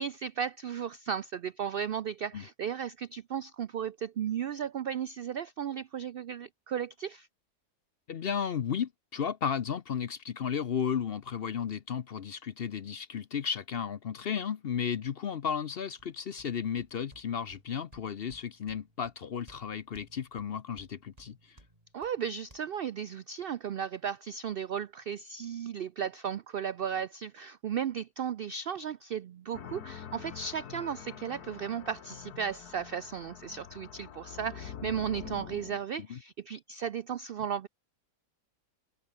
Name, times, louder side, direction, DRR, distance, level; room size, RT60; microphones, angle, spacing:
voice 1, 0.0-7.3 21.9-37.7, right 8 dB, 85° right, 0.5 m, -35 dB
voice 2, 8.1-21.6 36.1-36.2, left 7 dB, 50° left, 0.8 m, -34 dB
sound 1, 16.0-22.6, right 1 dB, 25° right, 7.5 m, -60 dB
sound 2, 29.5-35.8, left 9 dB, 80° left, 1.7 m, -45 dB
omnidirectional pair, 1.6 m